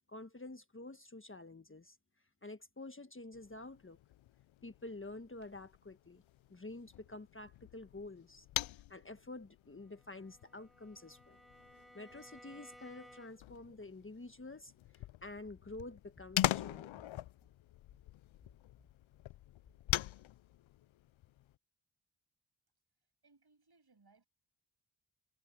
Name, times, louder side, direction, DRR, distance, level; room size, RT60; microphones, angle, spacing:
voice 1, 0.1-2.0 2.4-4.0 4.6-6.2 6.5-8.5 8.7-11.4 11.9-17.0, left 2 dB, 25° left, 1.4 m, -49 dB
sound 1, 3.3-21.5, left 14 dB, 75° left, 0.6 m, -43 dB
Bowed string instrument, 9.8-13.6, equal, ahead, 6.2 m, -59 dB
voice 2, 23.2-24.3, right 3 dB, 50° right, 7.9 m, -68 dB
cardioid pair, 45°, 48 cm